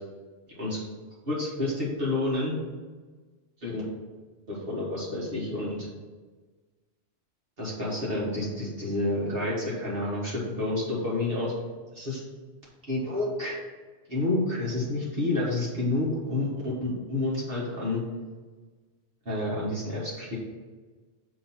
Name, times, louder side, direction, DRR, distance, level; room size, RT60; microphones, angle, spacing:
voice 1, 1.3-2.5 3.6-3.8 4.5-5.9 7.6-11.5 11.9-12.2 12.9-13.6 14.1-18.0 19.3-20.4, left 2 dB, 55° right, -6 dB, 1.8 m, -29 dB
7.4 x 2.9 x 5.9 m, 1.4 s
omnidirectional pair, 1.1 m